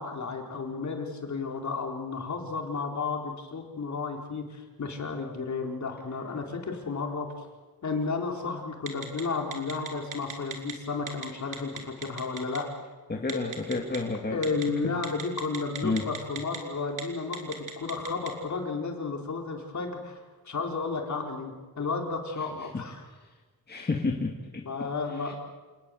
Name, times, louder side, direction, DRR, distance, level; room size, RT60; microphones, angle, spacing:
voice 1, 0.0-7.5 7.8-12.7 13.3-13.4 14.3-23.0 24.7-25.3, left 4 dB, 50° left, 2 dB, 4.3 m, -33 dB
Telephone, 8.9-9.2 9.5-10.7 11.1-11.3 11.5-12.6 13.3-14.0 14.4-14.6 15.0-16.6 16.9-17.0 17.3-18.3, right 7 dB, 55° right, 3.9 m, -36 dB
voice 2, 13.1-14.4 15.8-16.0 22.7-22.8 23.7-24.9, left 3 dB, 25° left, 1 dB, 2.3 m, -30 dB
28.0 x 19.0 x 7.8 m, 1.3 s
wide cardioid pair, 115°, 37 cm